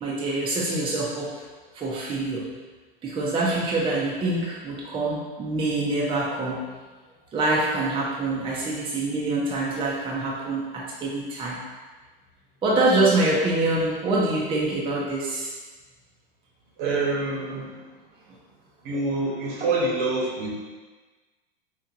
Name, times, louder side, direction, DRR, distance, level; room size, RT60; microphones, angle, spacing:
voice 1, 0.0-1.4 1.7-2.4 3.0-6.6 7.3-11.6 12.6-15.5, right 2 dB, 15° right, -5 dB, 0.6 m, -25 dB
voice 2, 16.8-17.7 18.8-20.5, right 3 dB, 55° right, -3 dB, 1.0 m, -26 dB
4.4 x 2.5 x 2.5 m, 1.3 s
hypercardioid pair, 105°, 30 cm